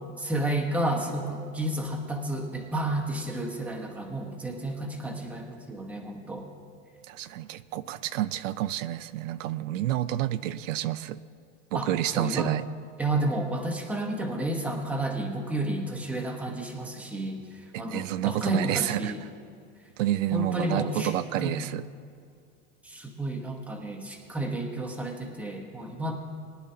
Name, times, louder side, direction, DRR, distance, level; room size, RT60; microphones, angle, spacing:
voice 1, 0.2-6.5 11.7-12.5 13.0-19.2 20.3-21.1 21.4-21.7 22.8-26.1, right 1 dB, 5° right, 1.0 m, -31 dB
voice 2, 7.1-11.2 11.7-12.6 17.7-19.1 20.0-21.8, right 13 dB, 90° right, 0.6 m, -29 dB
22.5 x 10.5 x 2.8 m
supercardioid pair, 160°, 37 cm